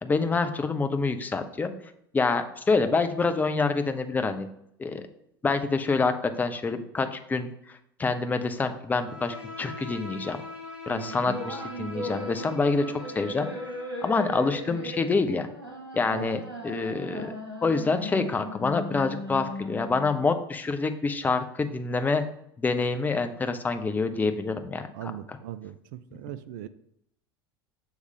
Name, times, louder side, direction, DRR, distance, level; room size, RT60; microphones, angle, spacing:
voice 1, 0.0-1.7 2.1-4.5 4.8-5.0 5.4-7.5 8.0-10.4 10.9-13.5 14.0-15.5 15.9-17.4 17.6-22.2 22.6-25.1, left 4 dB, 15° left, 8 dB, 0.6 m, -26 dB
Bowed string instrument, 8.9-14.1, left 3 dB, 10° right, 1.2 m, -42 dB
voice 2, 10.9-11.2 16.1-16.4 24.9-26.7, right 11 dB, 50° right, 13 dB, 0.4 m, -39 dB
sound 1, 11.2-20.2, equal, 85° right, 1.3 m, -37 dB
6.5 x 3.2 x 5.2 m, 0.74 s
figure-of-eight pair, 75°, 13 cm